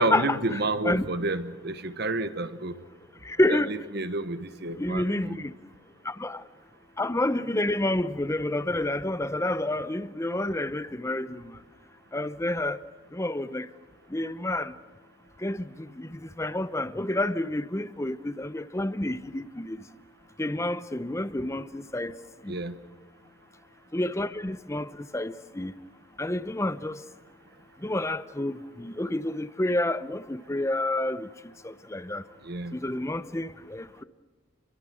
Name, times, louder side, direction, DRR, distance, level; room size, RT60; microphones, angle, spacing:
voice 1, 0.0-2.7 3.5-5.5 22.5-22.8 32.4-32.8, right 2 dB, 50° right, 1.2 m, -30 dB
voice 2, 3.3-3.7 4.8-5.5 6.1-6.4 7.0-11.4 12.1-12.8 13.1-13.7 14.1-14.7 15.4-15.6 16.0-16.1 16.4-19.8 20.4-22.1 22.4-22.5 23.9-25.7 26.2-27.0 27.8-31.3 31.6-32.2 32.7-34.0, left 1 dB, 15° left, 0.7 m, -29 dB
30.0 x 23.0 x 6.3 m
head